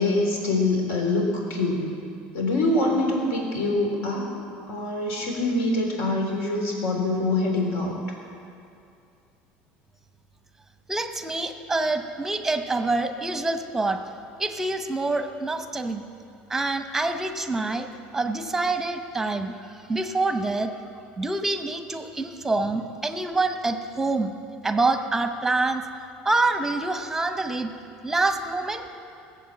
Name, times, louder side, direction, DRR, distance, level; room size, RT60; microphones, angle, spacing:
voice 1, 0.0-1.9 2.3-4.3 4.7-7.9, left 2 dB, 75° left, 0 dB, 3.7 m, -24 dB
voice 2, 10.9-14.0 14.4-16.0 16.5-20.7 21.2-24.3 24.6-25.8 26.2-27.7 28.0-28.8, right 2 dB, 10° right, 7 dB, 0.8 m, -26 dB
18.5 x 7.8 x 7.7 m, 2.6 s
cardioid pair, 145°, 4 cm